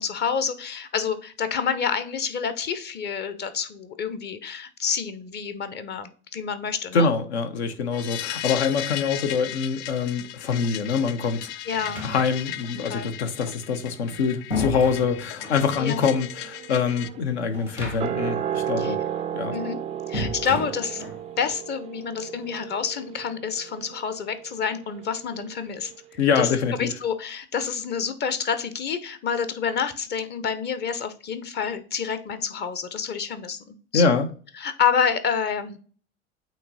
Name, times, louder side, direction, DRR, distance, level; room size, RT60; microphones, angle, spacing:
voice 1, 0.0-7.1 11.6-12.0 12.9-13.1 15.8-16.0 18.8-18.9 19.5-19.8 20.1-21.0 21.4-25.9 26.4-34.1 34.6-35.8, left 6 dB, 30° left, 0.9 m, -28 dB
voice 2, 6.9-11.5 12.0-19.0 19.3-19.5 26.2-26.9 33.9-34.3, left 5 dB, 65° left, 1.1 m, -24 dB
sound 1, 7.9-17.1, left 12 dB, 45° left, 0.5 m, -36 dB
sound 2, 11.7-12.6 13.8-15.7 17.5-18.4 18.6-18.7 20.1-21.3, left 2 dB, 85° left, 1.7 m, -33 dB
sound 3, 15.6-25.9 26.2-26.3, right 9 dB, 20° right, 0.4 m, -34 dB
8.6 x 3.2 x 4.0 m
figure-of-eight pair, 75°, 35 cm